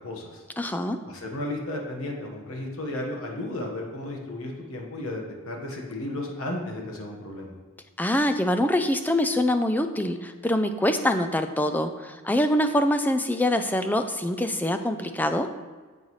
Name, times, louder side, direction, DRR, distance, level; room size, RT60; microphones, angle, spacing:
voice 1, 0.0-0.4 1.1-7.6, left 1 dB, 70° left, 0 dB, 1.4 m, -34 dB
voice 2, 0.6-1.0 8.0-15.5, left 1 dB, 10° left, 8 dB, 0.4 m, -24 dB
9.5 x 7.8 x 3.2 m, 1.5 s
head